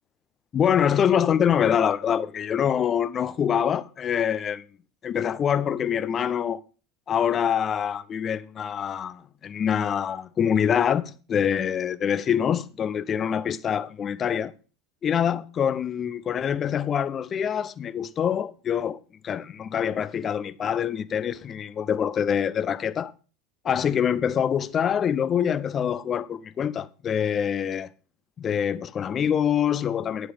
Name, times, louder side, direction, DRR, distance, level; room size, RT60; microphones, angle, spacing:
voice 1, 0.5-4.6 5.0-6.6 7.1-14.5 15.0-19.0 19.2-23.1 23.6-27.9 28.4-30.3, left 8 dB, 30° left, 0.6 m, -25 dB
9.8 x 7.9 x 5.2 m
figure-of-eight pair, 75°, 0 cm